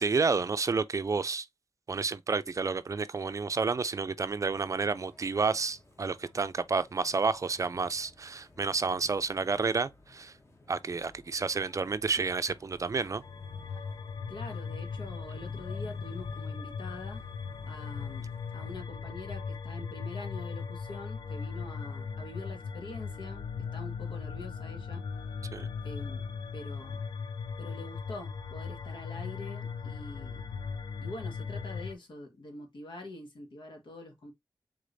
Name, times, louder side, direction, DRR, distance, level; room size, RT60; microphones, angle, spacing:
voice 1, 0.0-1.5 1.9-10.4 10.7-13.2 25.5-25.7, right 4 dB, 40° right, 0.4 m, -30 dB
sound 1, 4.5-18.8, left 2 dB, 35° left, 1.2 m, -55 dB
sound 2, 13.2-31.9, left 5 dB, 75° left, 0.5 m, -38 dB
voice 2, 14.3-17.2 17.7-25.0 25.8-27.0 27.6-30.4 31.0-34.3, left 2 dB, 90° left, 1.5 m, -45 dB
5.0 x 3.7 x 2.6 m
wide cardioid pair, 105°, 8 cm